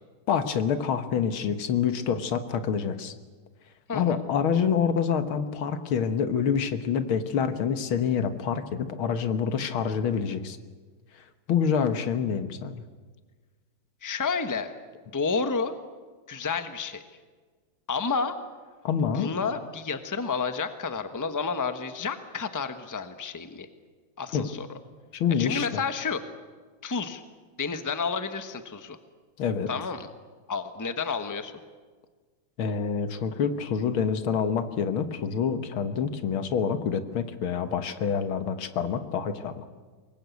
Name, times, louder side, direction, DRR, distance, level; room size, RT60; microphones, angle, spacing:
voice 1, 0.3-3.1 3.9-10.6 11.5-12.8 18.8-19.3 24.3-24.5 25.1-25.8 29.4-29.7 32.6-39.6, left 7 dB, 80° left, 9 dB, 2.1 m, -27 dB
voice 2, 3.9-4.2 14.0-14.7 15.1-15.7 16.3-17.0 17.9-18.4 19.1-23.7 24.2-24.7 25.4-26.2 26.8-27.2 27.6-29.0 29.7-30.1 30.5-31.5, left 5 dB, 10° left, 9 dB, 0.9 m, -30 dB
24.5 x 21.0 x 8.4 m, 1.5 s
omnidirectional pair, 2.3 m